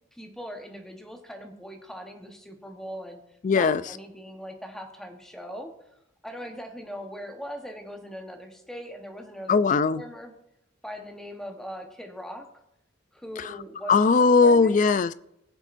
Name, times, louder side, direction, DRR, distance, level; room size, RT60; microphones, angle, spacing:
voice 1, 0.1-3.2 3.5-5.7 6.2-9.6 9.9-10.3 10.8-12.5 13.1-14.9, equal, 5° left, 1.1 m, -40 dB
voice 2, 3.4-3.8 9.5-10.0 13.9-15.1, left 4 dB, 40° left, 0.3 m, -19 dB
20.0 x 7.2 x 2.6 m
head